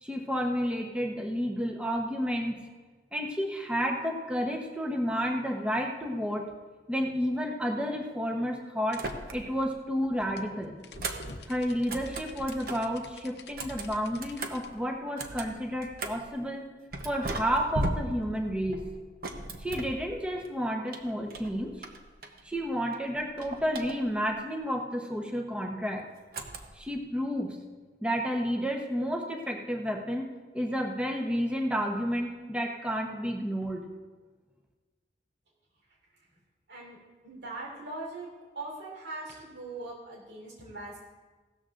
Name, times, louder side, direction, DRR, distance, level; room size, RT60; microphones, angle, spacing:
voice 1, 0.0-2.5 3.1-6.5 6.9-10.7 11.5-16.6 17.0-18.8 19.6-21.7 22.4-26.0 26.7-27.6 28.0-30.3 30.5-33.9, equal, 5° right, 1 dB, 1.0 m, -31 dB
sound 1, 8.9-14.7, left 3 dB, 65° left, 0.8 m, -49 dB
sound 2, 8.9-9.7 10.0-12.9 13.4-16.3 16.9-20.5 20.9-22.6 22.9-24.3 26.3-27.0, right 2 dB, 55° right, 1.0 m, -38 dB
voice 2, 36.7-37.0 37.2-38.3 38.5-41.0, right 2 dB, 85° right, -3 dB, 3.8 m, -40 dB
16.5 x 13.0 x 2.6 m, 1.3 s
head